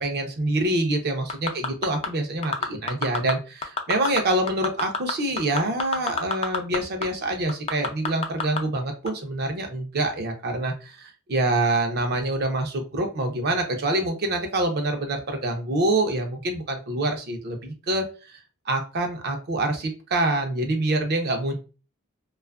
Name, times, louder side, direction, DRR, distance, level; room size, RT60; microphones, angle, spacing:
voice 1, 0.0-21.5, right 2 dB, 50° right, 4 dB, 0.5 m, -26 dB
sound 1, 1.3-2.1 2.4-3.3 3.6-4.2 4.5-6.8 7.0-7.1 7.5-8.6 9.1-9.2, left 4 dB, 25° left, 0.3 m, -26 dB
2.5 x 2.3 x 2.3 m, 0.33 s
head